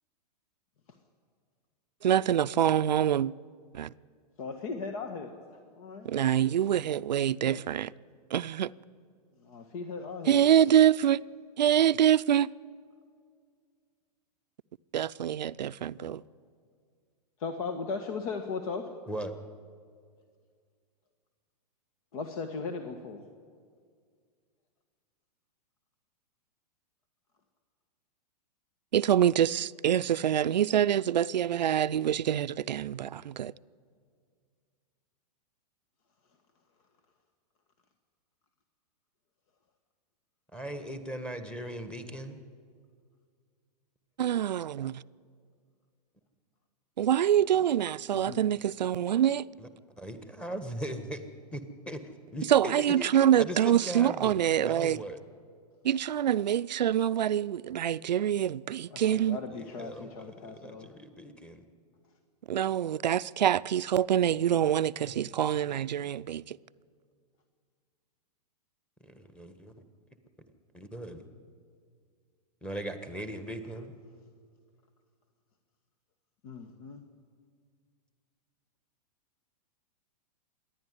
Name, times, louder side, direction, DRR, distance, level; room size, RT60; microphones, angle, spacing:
voice 1, 2.0-3.3 3.7-3.9 6.0-7.9 8.3-8.7 10.3-11.2 11.6-12.5 14.9-16.2 28.9-33.5 44.2-45.0 47.0-49.5 52.5-55.0 55.8-59.4 62.5-66.6, right 10 dB, 85° right, 0.5 m, -25 dB
voice 2, 4.4-6.1 7.4-7.6 9.4-10.4 16.0-16.2 17.4-18.9 22.1-23.2 48.1-48.4 58.9-60.9 76.4-77.0, left 4 dB, 55° left, 1.6 m, -38 dB
voice 3, 40.5-42.4 49.6-49.7 50.0-51.2 51.5-53.1 53.4-55.2 59.5-61.6 65.0-65.1 65.7-66.0 69.0-69.7 70.7-71.2 72.6-73.9, right 1 dB, 5° left, 1.5 m, -39 dB
27.0 x 11.0 x 9.7 m
hypercardioid pair, 120°, 21 cm